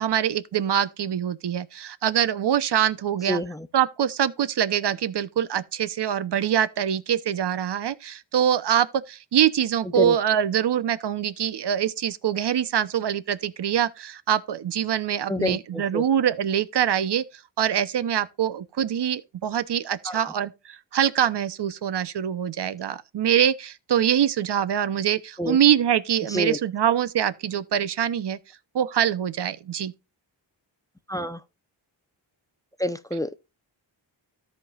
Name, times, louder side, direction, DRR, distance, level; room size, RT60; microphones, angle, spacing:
voice 1, 0.0-3.4 3.7-17.2 17.6-28.4 28.7-29.9, right 9 dB, 60° right, 0.9 m, -24 dB
voice 2, 3.3-3.7 9.9-10.2 15.3-16.0 20.0-20.3 25.4-25.6 26.3-26.6 31.1-31.4 32.8-33.4, equal, 10° left, 0.6 m, -27 dB
13.5 x 5.4 x 2.4 m
cardioid pair, 65°, 46 cm